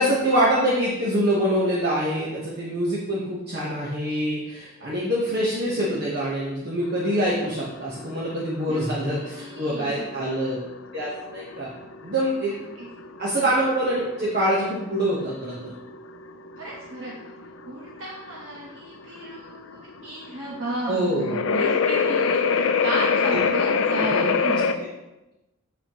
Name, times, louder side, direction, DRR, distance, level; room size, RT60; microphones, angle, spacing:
voice 1, 0.0-10.6 10.9-11.7 12.0-12.6 13.2-15.7 20.9-21.4 24.1-24.3, equal, 45° right, -6 dB, 1.3 m, -25 dB
sound 1, 6.8-24.7, left 5 dB, 65° left, 0.5 m, -26 dB
voice 2, 9.3-10.0 12.8-12.9 16.6-17.1 17.7-24.7, right 1 dB, 65° right, -4 dB, 1.2 m, -33 dB
7.4 x 7.1 x 3.1 m, 0.99 s
head